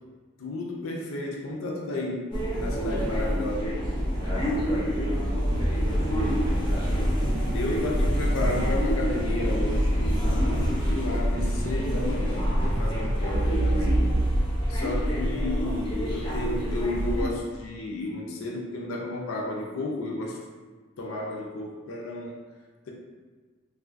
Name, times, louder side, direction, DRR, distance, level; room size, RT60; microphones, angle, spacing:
voice 1, 0.4-2.2 2.5-3.8 7.5-14.1 14.7-20.4 21.0-22.4, left 2 dB, 85° left, -1 dB, 0.4 m, -32 dB
sound 1, 2.3-17.3, equal, 20° left, 0.4 m, -26 dB
voice 2, 2.5-3.4 4.1-6.9 10.2-10.7, equal, 30° right, -11 dB, 1.4 m, -39 dB
sound 2, 5.5-7.7 8.0-8.8 9.1-12.1 12.5-14.9, right 2 dB, 85° right, 0.5 m, -32 dB
3.0 x 2.3 x 2.4 m, 1.4 s
head